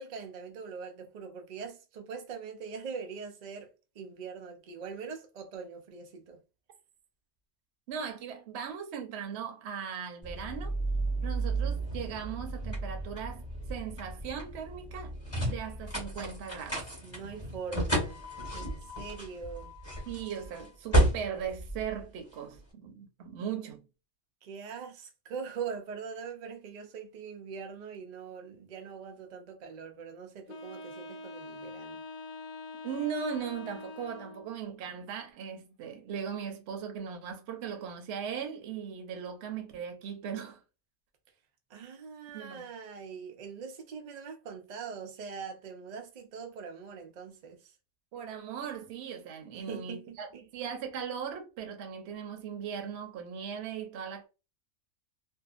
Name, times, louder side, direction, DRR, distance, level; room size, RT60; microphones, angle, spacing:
voice 1, 0.0-6.4 17.0-18.3 18.5-19.7 24.4-32.0 41.7-47.8 49.5-50.4, right 6 dB, 75° right, 0.4 m, -42 dB
voice 2, 7.9-10.7 11.2-15.1 15.4-16.8 20.1-23.9 32.8-40.6 42.3-42.7 48.1-54.3, right 7 dB, 60° right, 0.8 m, -38 dB
sound 1, 10.2-22.6, right 1 dB, 10° left, 0.9 m, -33 dB
Wind instrument woodwind instrument, 30.5-34.6, left 3 dB, 65° left, 0.5 m, -44 dB
2.7 x 2.3 x 2.4 m
omnidirectional pair, 1.5 m